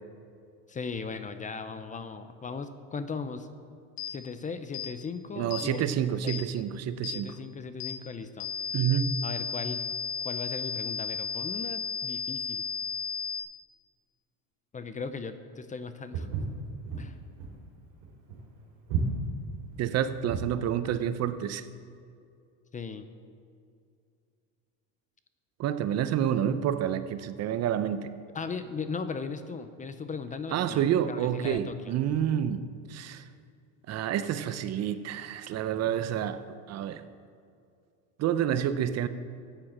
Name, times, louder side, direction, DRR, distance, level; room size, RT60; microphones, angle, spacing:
voice 1, 0.7-3.5 4.1-5.8 6.2-6.4 7.1-8.5 9.2-9.8 10.2-12.6 14.7-16.3 17.0-17.2 22.7-23.1 28.3-31.9, left 5 dB, 20° left, 10 dB, 0.6 m, -37 dB
sound 1, 4.0-4.1 4.7-4.9 5.5-5.7 6.3-6.4 7.0-7.2 7.8-8.0 8.4-13.4, left 6 dB, 75° left, 1.4 m, -34 dB
voice 2, 5.4-7.3 8.7-9.2 19.8-21.6 25.6-28.1 30.5-33.2 33.9-37.0 38.2-39.1, right 10 dB, 45° right, 12 dB, 0.7 m, -29 dB
Walk footsteps, 16.1-20.6, right 4 dB, 70° right, 3.5 m, -33 dB
12.0 x 9.0 x 7.3 m, 2.5 s
supercardioid pair, 120°, 37 cm